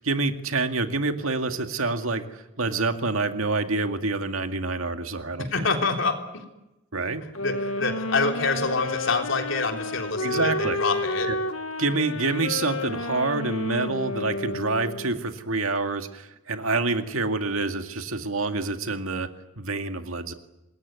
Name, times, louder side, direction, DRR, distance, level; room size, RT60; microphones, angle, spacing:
voice 1, 0.0-5.7 6.9-7.2 10.2-10.8 11.3-11.4 11.8-19.3 19.6-20.3, right 3 dB, 85° right, 7 dB, 2.2 m, -27 dB
voice 2, 5.4-6.4 7.2-11.3, left 3 dB, 65° left, 4 dB, 3.5 m, -26 dB
sound 1, 7.4-15.3, left 2 dB, 90° left, 1.5 m, -31 dB
26.5 x 21.0 x 9.5 m, 0.97 s
head